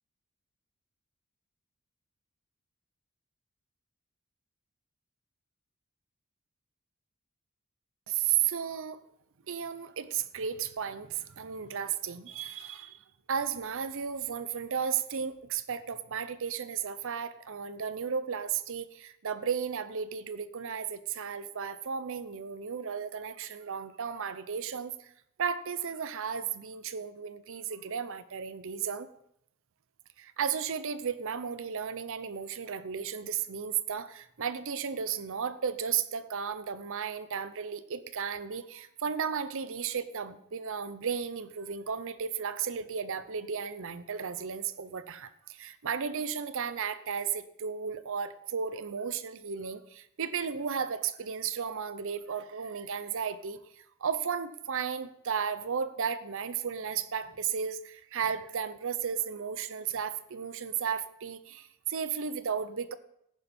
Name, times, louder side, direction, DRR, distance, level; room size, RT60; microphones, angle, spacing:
voice 1, 8.1-9.0 9.5-13.0 13.3-25.1 25.4-29.1 30.2-62.9, right 7 dB, 65° right, 14 dB, 0.7 m, -34 dB
14.5 x 10.5 x 4.3 m, 0.76 s
head